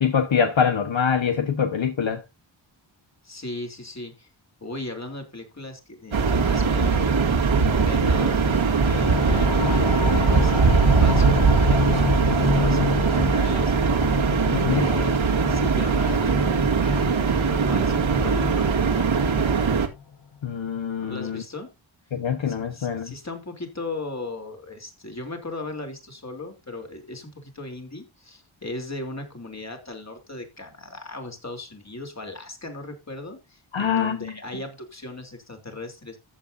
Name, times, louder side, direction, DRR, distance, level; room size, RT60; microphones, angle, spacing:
voice 1, 0.0-2.2 14.5-14.9 20.4-21.4 22.1-23.1 33.7-34.3, left 7 dB, 65° left, 1.4 m, -24 dB
voice 2, 3.2-4.3 4.6-13.7 14.7-17.2 17.5-19.1 21.0-21.7 22.5-36.2, left 2 dB, 35° left, 3.6 m, -37 dB
sound 1, 6.1-19.9, right 5 dB, 70° right, 2.0 m, -21 dB
sound 2, 8.8-20.1, left 6 dB, 50° left, 0.8 m, -30 dB
14.0 x 8.5 x 2.7 m
wide cardioid pair, 85°, 49 cm